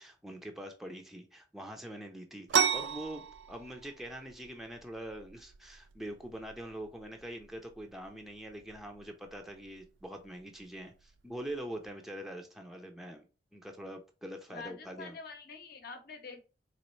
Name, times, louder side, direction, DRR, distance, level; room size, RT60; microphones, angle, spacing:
voice 1, 0.0-15.2, right 1 dB, ahead, 0.5 m, -44 dB
sound 1, 2.5-11.9, right 7 dB, 70° right, 0.4 m, -37 dB
voice 2, 14.5-16.4, left 4 dB, 55° left, 0.8 m, -46 dB
4.1 x 3.0 x 3.1 m
head